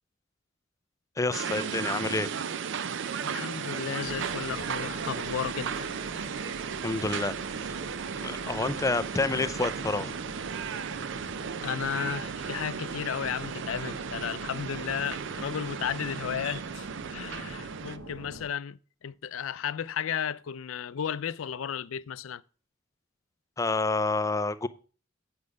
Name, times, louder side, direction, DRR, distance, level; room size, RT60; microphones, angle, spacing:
voice 1, 1.2-2.3 6.8-7.3 8.2-10.1 23.6-24.7, left 3 dB, 15° left, 0.4 m, -28 dB
sound 1, 1.3-18.0, right 7 dB, 65° right, 0.4 m, -35 dB
voice 2, 3.2-5.9 11.6-22.4, left 8 dB, 85° left, 0.4 m, -34 dB
sound 2, 4.0-18.5, right 1 dB, 80° right, 1.3 m, -43 dB
8.6 x 4.8 x 5.2 m
head